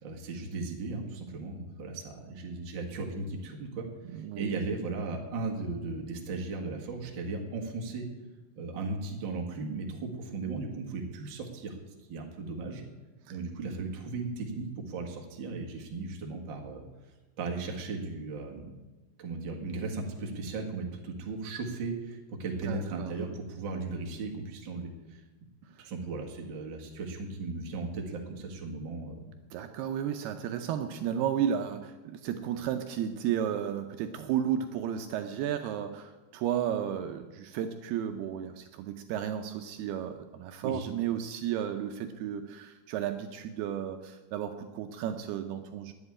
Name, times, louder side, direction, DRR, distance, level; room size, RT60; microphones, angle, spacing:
voice 1, 0.0-8.0 8.5-11.8 12.1-12.8 13.3-16.8 17.4-18.7 19.2-25.2 25.8-29.3 40.6-40.8, right 3 dB, 65° right, 0 dB, 1.2 m, -36 dB
voice 2, 4.1-4.5 13.3-13.4 22.7-23.1 29.5-45.9, right 9 dB, 80° right, 6 dB, 2.4 m, -33 dB
10.5 x 7.9 x 9.7 m, 1.2 s
omnidirectional pair, 5.1 m